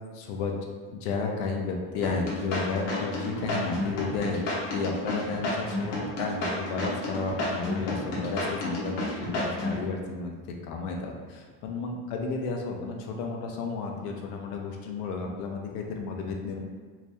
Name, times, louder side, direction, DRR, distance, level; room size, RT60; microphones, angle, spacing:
voice 1, 0.1-0.6 0.9-4.4 4.7-11.1 11.6-16.6, left 4 dB, 90° left, 2 dB, 0.7 m, -32 dB
sound 1, 2.0-9.8, left 1 dB, 60° left, 1.0 m, -31 dB
2.8 x 2.7 x 3.3 m, 1.5 s
cardioid pair, 175°, 43 cm